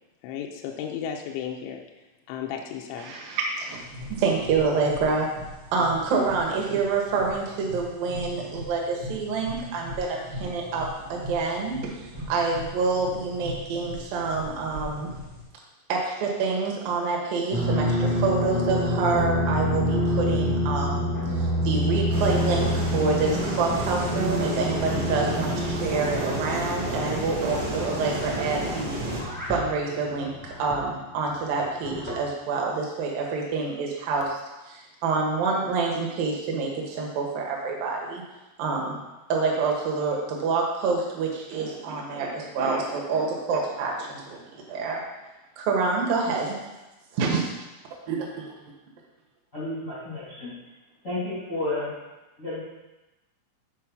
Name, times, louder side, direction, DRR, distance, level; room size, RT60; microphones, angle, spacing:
voice 1, 0.2-1.8 2.3-3.2, left 8 dB, 80° left, 1 dB, 2.7 m, -34 dB
voice 2, 3.0-3.8 4.1-5.3 5.7-11.9 12.3-15.1 15.9-21.1 21.4-34.4 34.7-38.2 38.6-39.0 39.3-45.0 45.6-46.6 47.1-47.5 48.1-48.3, right 4 dB, 65° right, -1 dB, 2.3 m, -27 dB
sound 1, 3.8-15.4, left 1 dB, 50° right, 1.2 m, -40 dB
sound 2, 17.5-30.9 31.6-32.1, equal, 10° right, 0.6 m, -27 dB
sound 3, 22.1-29.2, right 1 dB, 85° right, 1.6 m, -31 dB
voice 3, 49.5-50.5 51.0-51.9 52.4-52.6, left 2 dB, 50° left, -8 dB, 0.8 m, -31 dB
8.5 x 4.5 x 6.0 m, 1.1 s
omnidirectional pair, 6.0 m